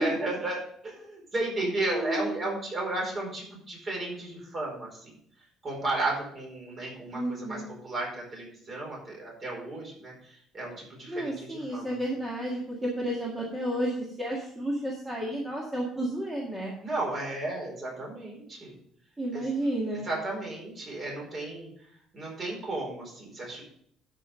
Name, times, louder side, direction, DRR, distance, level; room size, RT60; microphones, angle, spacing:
voice 1, 0.0-5.1 5.6-10.1 10.5-11.9 16.8-18.7 19.3-19.4 20.0-21.7 22.1-23.6, right 2 dB, 30° right, -1 dB, 4.6 m, -34 dB
voice 2, 1.9-2.3 7.1-7.7 11.1-16.7 19.2-20.1, right 1 dB, 10° right, -4 dB, 1.9 m, -31 dB
12.5 x 5.4 x 5.0 m, 0.66 s
cardioid pair, 150°, 0 cm